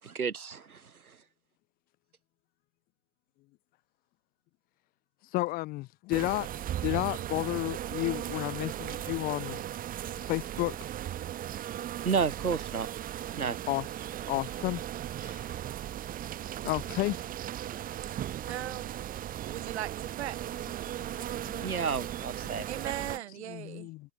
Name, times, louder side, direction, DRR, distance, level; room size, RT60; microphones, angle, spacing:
voice 1, 0.0-1.2 12.0-12.9 13.3-13.6 21.6-22.6, right 5 dB, 70° right, 7.8 m, -31 dB
voice 2, 5.3-6.5 6.8-9.6 10.3-10.7 13.7-13.8 14.3-14.8 15.2-15.5 16.6-17.2 21.0-21.2 21.5-21.8 23.5-24.0, left 19 dB, 20° left, 1.3 m, -32 dB
sound 1, 6.1-23.2, right 12 dB, 20° right, 6.3 m, -37 dB
voice 3, 18.5-18.9 19.4-20.5 22.4-23.9, right 13 dB, 45° right, 7.3 m, -39 dB
figure-of-eight pair, 130°, 44 cm